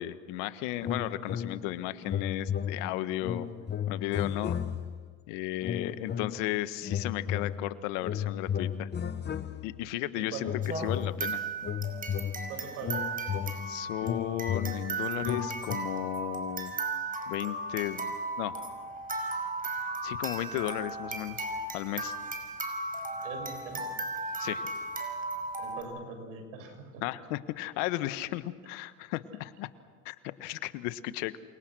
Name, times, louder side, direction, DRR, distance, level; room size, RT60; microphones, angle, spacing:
voice 1, 0.0-3.5 3.9-4.6 5.3-8.9 9.6-10.5 10.7-11.4 13.7-16.8 17.3-18.6 20.0-21.4 21.7-22.1 24.4-24.6 27.0-29.7 30.0-31.4, left 15 dB, 75° left, 12 dB, 1.5 m, -34 dB
sound 1, 0.8-1.8 2.0-5.1 5.6-6.5 6.8-9.9 10.4-15.8, left 8 dB, 30° left, 1.1 m, -34 dB
voice 2, 10.1-10.5 12.5-13.1 23.2-23.9 25.6-27.0, right 4 dB, 80° right, 5 dB, 7.0 m, -41 dB
sound 2, 10.6-25.8, right 3 dB, 20° right, 5.7 m, -36 dB
29.0 x 27.5 x 6.3 m, 1.5 s
supercardioid pair, 100°, 37 cm